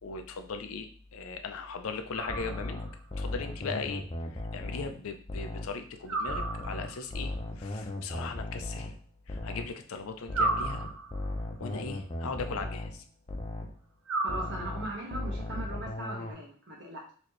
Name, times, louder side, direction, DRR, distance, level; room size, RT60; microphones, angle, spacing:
voice 1, 0.0-2.8 3.2-4.0 4.3-8.9 9.3-10.8 11.6-13.0, left 4 dB, 80° left, 6 dB, 0.5 m, -38 dB
sound 1, 2.1-3.0 6.1-7.1 10.3-11.4 14.1-15.1, right 2 dB, 75° right, 0.7 m, -33 dB
sound 2, 2.3-5.8 6.3-9.8 10.3-13.8 14.3-16.3, left 1 dB, 25° left, 0.5 m, -37 dB
voice 2, 14.2-17.1, right 1 dB, 55° right, -1 dB, 1.2 m, -39 dB
4.2 x 2.9 x 3.1 m, 0.42 s
head